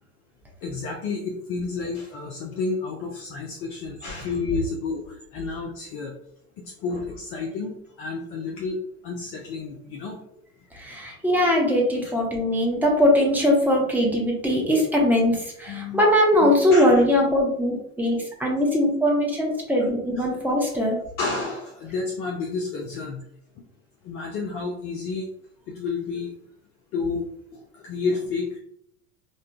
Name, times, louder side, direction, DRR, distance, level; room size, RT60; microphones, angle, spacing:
voice 1, 0.6-5.0 5.3-6.1 6.6-8.8 9.0-10.2 12.0-12.1 15.7-16.1 16.4-17.0 20.2-20.3 21.2-23.2 24.0-25.3 25.7-26.3 26.9-27.2 27.7-28.6, left 4 dB, 30° left, 1 dB, 0.5 m, -30 dB
voice 2, 10.8-21.0, left 1 dB, 5° right, -2 dB, 0.8 m, -21 dB
5.0 x 2.2 x 2.2 m, 0.72 s
figure-of-eight pair, 75°, 43 cm